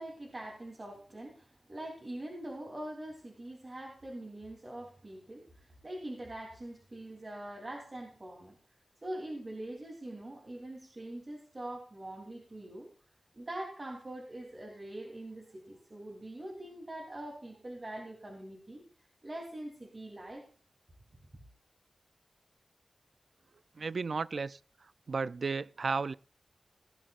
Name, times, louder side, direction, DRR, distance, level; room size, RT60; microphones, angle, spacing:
voice 1, 0.0-8.6 9.0-12.9 13.3-20.5, right 1 dB, 35° right, 3.4 m, -43 dB
voice 2, 23.8-24.6 25.1-26.1, right 4 dB, 65° right, 0.4 m, -33 dB
18.5 x 12.0 x 2.5 m
wide cardioid pair, 105°, 0 cm